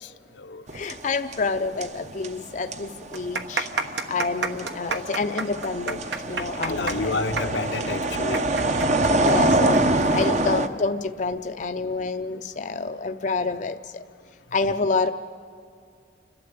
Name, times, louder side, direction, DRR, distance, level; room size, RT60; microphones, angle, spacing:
voice 1, 0.0-0.6 6.6-8.4, left 3 dB, 80° left, 7 dB, 0.8 m, -30 dB
voice 2, 0.7-3.7 4.1-7.7 9.2-14.0 14.5-15.1, left 4 dB, 45° left, 7 dB, 0.5 m, -28 dB
sound 1, 0.7-10.7, right 2 dB, 40° right, 0.8 m, -25 dB
sound 2, 2.0-2.1 2.3-2.4 3.0-10.3 10.6-10.7 11.4-11.7, right 4 dB, 70° right, 1.3 m, -30 dB
30.0 x 12.5 x 8.5 m, 2.4 s
head